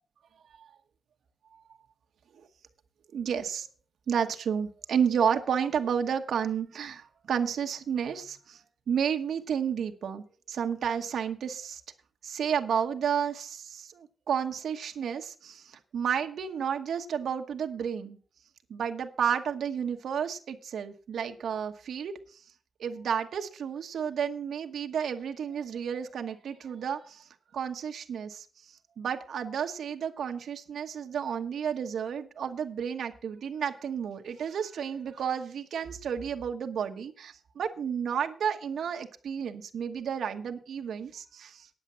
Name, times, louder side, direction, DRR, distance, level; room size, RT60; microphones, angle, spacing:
voice 1, 3.1-3.7 4.1-11.8 12.2-18.2 18.7-22.4 22.8-27.2 27.5-41.7, right 7 dB, 90° right, 5 dB, 1.1 m, -31 dB
9.9 x 7.2 x 7.2 m, 0.41 s
wide cardioid pair, 130°, 0 cm